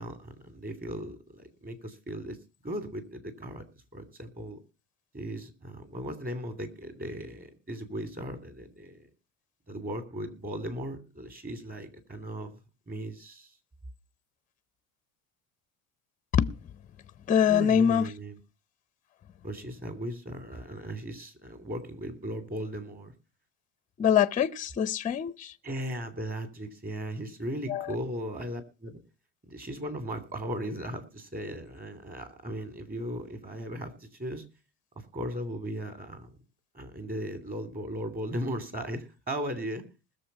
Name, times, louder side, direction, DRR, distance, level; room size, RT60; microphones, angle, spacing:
voice 1, 0.0-2.4 2.6-3.6 3.9-4.6 5.1-9.0 9.7-12.5 12.9-13.5 17.5-18.4 19.4-23.1 25.6-29.0 29.5-34.4 35.0-36.4 36.7-39.8, right 1 dB, 25° right, 3.0 m, -37 dB
voice 2, 17.3-18.1 24.0-25.5 27.7-27.9, left 8 dB, 20° left, 0.6 m, -24 dB
20.5 x 7.1 x 5.6 m
cardioid pair, 135°, 38 cm